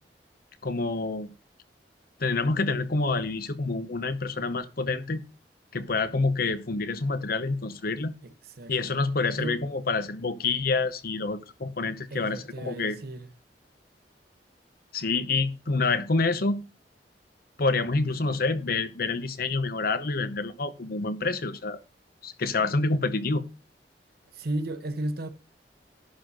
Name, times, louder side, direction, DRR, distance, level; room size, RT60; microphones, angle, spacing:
voice 1, 0.6-1.3 2.2-5.2 5.7-8.1 8.7-13.0 14.9-16.6 17.6-21.8 22.2-23.5, left 3 dB, 60° left, 0.8 m, -27 dB
voice 2, 8.2-8.7 9.4-9.6 12.1-13.3 24.3-25.3, right 1 dB, 60° right, 1.0 m, -34 dB
11.5 x 4.1 x 6.1 m
head